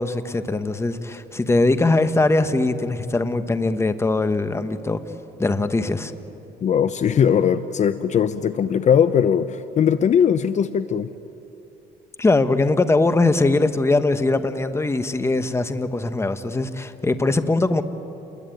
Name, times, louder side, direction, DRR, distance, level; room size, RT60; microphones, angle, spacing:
voice 1, 0.0-5.0 5.4-6.1 12.2-17.8, left 2 dB, 15° left, 10 dB, 1.3 m, -21 dB
voice 2, 6.6-11.1, left 8 dB, 45° left, 12 dB, 0.8 m, -19 dB
28.5 x 22.0 x 9.3 m, 3.0 s
cardioid pair, 110°, 17 cm